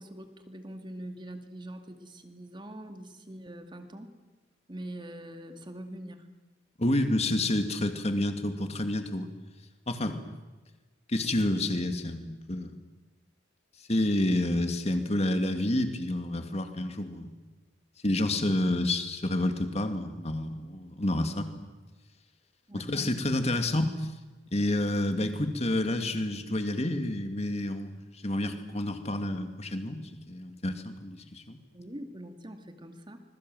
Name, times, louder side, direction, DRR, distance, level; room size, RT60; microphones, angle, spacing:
voice 1, 0.0-4.1 4.7-6.3 22.7-22.9 31.7-33.2, right 1 dB, 25° right, 6 dB, 2.3 m, -43 dB
voice 2, 6.8-9.3 9.9-10.2 11.1-12.7 13.9-17.3 18.0-21.5 22.7-24.1 24.5-31.6, left 1 dB, 35° left, 7 dB, 2.3 m, -29 dB
26.0 x 22.0 x 7.9 m, 1.2 s
head